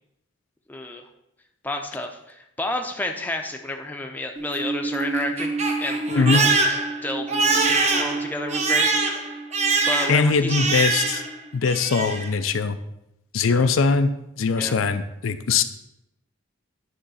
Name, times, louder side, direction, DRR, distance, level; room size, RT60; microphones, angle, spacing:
voice 1, 0.7-1.1 1.6-6.5 7.0-9.3 9.9-10.6 13.5-13.7 14.6-14.8, left 1 dB, 10° left, 3 dB, 0.6 m, -31 dB
Crying sobbing, 4.4-11.4 11.6-12.3, right 3 dB, 35° right, 0.8 m, -24 dB
voice 2, 6.1-6.5 10.1-11.2 11.5-12.8 13.3-15.6, left 4 dB, 80° left, 10 dB, 0.5 m, -21 dB
9.2 x 3.7 x 5.6 m, 0.85 s
head